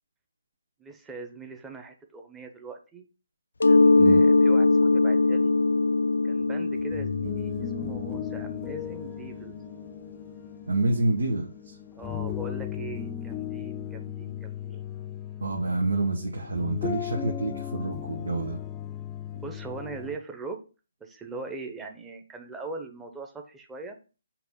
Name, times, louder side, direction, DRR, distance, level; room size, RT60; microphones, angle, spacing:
voice 1, 0.8-3.1 3.7-5.5 6.2-9.5 11.9-14.8 19.3-20.6 21.0-24.0, right 3 dB, 10° right, 4 dB, 0.9 m, -41 dB
Mallet percussion, 3.6-9.1, left 3 dB, 85° left, 0.4 m, -22 dB
sound 1, 6.8-20.2, left 10 dB, 15° left, 0.5 m, -36 dB
voice 2, 10.7-11.8 15.4-18.6, right 2 dB, 80° right, 1 dB, 1.2 m, -27 dB
5.9 x 3.0 x 5.5 m, 0.34 s
hypercardioid pair, 150°, 0 cm